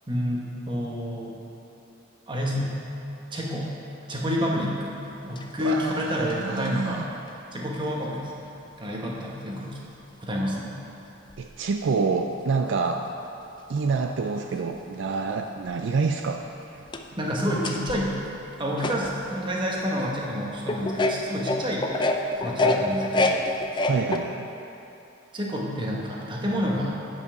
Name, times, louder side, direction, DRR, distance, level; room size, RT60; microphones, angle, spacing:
voice 1, 0.1-1.3 2.3-2.7 3.3-3.7 4.1-4.9 5.2-7.0 7.5-8.5 8.8-9.8 10.2-10.7 17.2-18.2 18.6-21.9 22.4-23.4 25.3-27.0, equal, 25° right, -3 dB, 1.1 m, -28 dB
sound 1, 5.4-6.7 7.3-7.4 9.3-9.4 10.5-10.6 11.3-11.5 14.7-14.8 15.7-15.8 16.3-16.4 16.7-19.4 19.9-20.0 20.7-24.2, left 2 dB, 25° left, 0.4 m, -27 dB
voice 2, 5.6-7.1 11.4-13.1 13.7-16.4 16.7-16.9 23.9-24.5, right 4 dB, 65° right, 4 dB, 0.4 m, -27 dB
9.3 x 5.5 x 5.9 m, 2.9 s
head